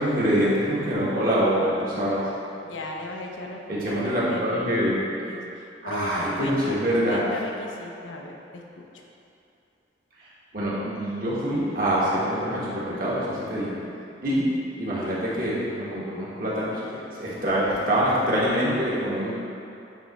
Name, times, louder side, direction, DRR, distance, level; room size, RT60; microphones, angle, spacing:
voice 1, 0.0-2.2 3.7-5.0 5.8-7.2 10.5-13.7 14.2-14.5 14.8-16.8 17.1-19.4, equal, 50° right, -7 dB, 1.5 m, -25 dB
voice 2, 2.6-9.0, left 1 dB, 90° left, 1 dB, 0.8 m, -37 dB
9.0 x 3.4 x 4.1 m, 2.7 s
head